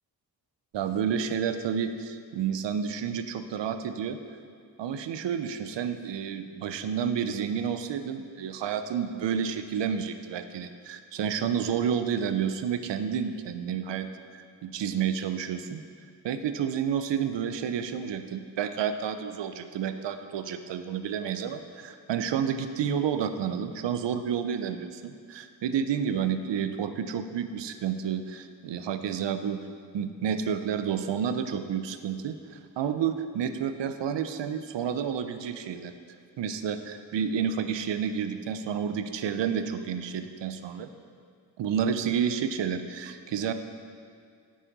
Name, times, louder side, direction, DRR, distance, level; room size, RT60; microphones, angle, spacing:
voice 1, 0.7-4.2 4.8-14.1 14.6-15.8 16.2-29.6 29.9-35.9 36.4-40.9 41.6-43.5, right 7 dB, 85° right, 10 dB, 0.6 m, -30 dB
9.2 x 6.3 x 4.0 m, 2.2 s
cardioid pair, 60°, 43 cm